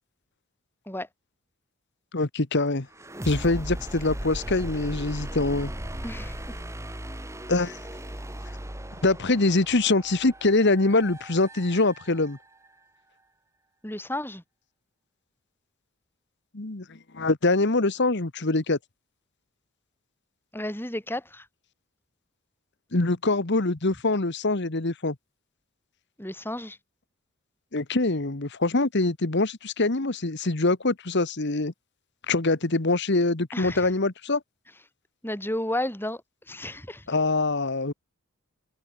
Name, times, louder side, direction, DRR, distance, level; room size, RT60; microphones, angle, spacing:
voice 1, 2.1-2.9 3.2-5.7 7.5-7.8 9.0-12.4 16.5-18.8 22.9-25.1 27.7-31.7 32.3-34.4 37.1-37.9, left 2 dB, 55° left, 1.4 m, -24 dB
sound 1, 2.9-12.7, right 1 dB, 15° right, 3.3 m, -37 dB
voice 2, 6.0-6.4 13.8-14.4 20.5-21.5 26.2-26.8 33.5-33.9 35.2-36.2 36.5-37.1, left 1 dB, 10° left, 6.8 m, -32 dB
head